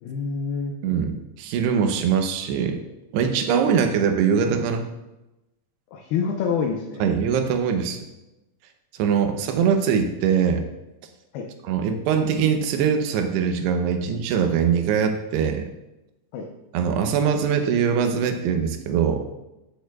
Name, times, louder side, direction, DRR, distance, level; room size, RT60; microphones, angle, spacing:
voice 1, 0.0-0.7 5.9-7.1 11.3-11.5 16.3-16.5, left 6 dB, 80° left, 1 dB, 2.7 m, -27 dB
voice 2, 0.8-2.8 3.1-4.9 7.0-8.0 9.0-10.6 11.6-15.7 16.7-19.3, right 7 dB, 90° right, 6 dB, 2.9 m, -22 dB
16.5 x 6.6 x 2.4 m, 0.96 s
omnidirectional pair, 4.7 m